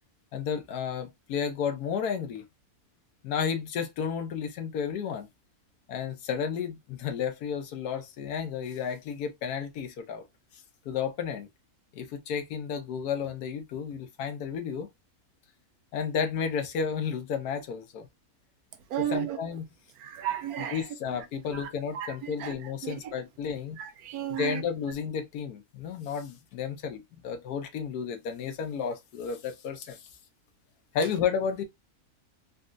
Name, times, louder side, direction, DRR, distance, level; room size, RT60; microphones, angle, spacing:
voice 1, 0.3-2.4 3.2-5.3 5.9-10.2 10.9-11.5 11.9-14.9 15.9-18.1 19.1-19.6 20.7-23.8 24.4-30.0 30.9-31.6, left 7 dB, 85° left, 1.3 m, -32 dB
voice 2, 18.9-19.4 20.0-21.2 21.5-23.1 23.8-24.6, right 11 dB, 75° right, 1.1 m, -34 dB
4.0 x 2.1 x 2.5 m
omnidirectional pair, 1.6 m